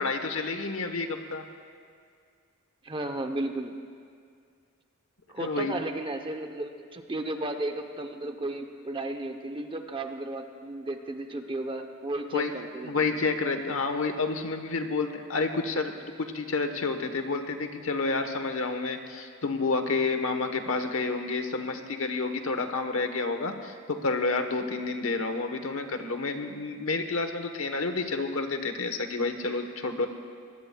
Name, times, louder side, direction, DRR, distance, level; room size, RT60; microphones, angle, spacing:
voice 1, 0.0-1.4 5.4-5.7 12.3-12.5 12.8-30.1, left 3 dB, 65° left, 6 dB, 1.1 m, -29 dB
voice 2, 2.8-3.7 5.3-13.1, right 2 dB, 25° right, 6 dB, 0.8 m, -34 dB
24.5 x 20.0 x 2.3 m, 2.2 s
head